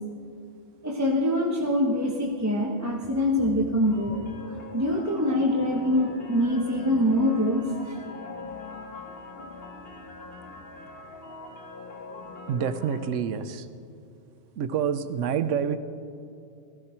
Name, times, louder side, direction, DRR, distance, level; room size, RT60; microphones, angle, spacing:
voice 1, 0.8-4.3 4.7-7.9, left 1 dB, 15° right, -2 dB, 1.0 m, -24 dB
sound 1, 3.9-13.1, left 3 dB, 55° left, 1.5 m, -42 dB
voice 2, 12.5-13.7 14.6-15.8, right 7 dB, 85° right, 11 dB, 1.1 m, -27 dB
16.0 x 14.5 x 4.4 m, 2.6 s
omnidirectional pair, 1.3 m